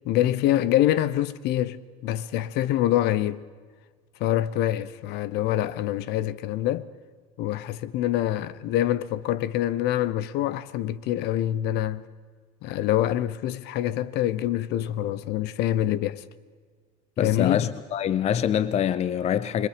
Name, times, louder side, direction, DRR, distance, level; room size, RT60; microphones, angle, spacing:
voice 1, 0.0-3.4 4.2-6.9 7.4-12.0 12.6-16.2 17.2-17.7, left 13 dB, 55° left, 0.9 m, -25 dB
voice 2, 17.2-19.7, left 9 dB, 35° left, 0.6 m, -25 dB
28.5 x 22.0 x 5.1 m
hypercardioid pair, 95°, 20 cm